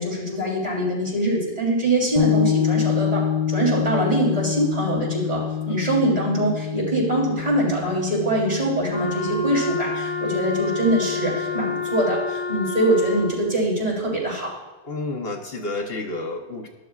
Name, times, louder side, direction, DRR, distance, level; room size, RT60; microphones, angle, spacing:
voice 1, 0.0-14.5, right 1 dB, 35° right, -5 dB, 3.4 m, -23 dB
sound 1, 2.2-11.8, left 8 dB, 40° left, 1.1 m, -27 dB
Wind instrument woodwind instrument, 8.9-13.6, left 2 dB, 10° left, 3.0 m, -28 dB
voice 2, 14.8-16.7, left 2 dB, 60° left, 2 dB, 1.2 m, -30 dB
13.0 x 11.5 x 2.4 m, 1.1 s
omnidirectional pair, 1.1 m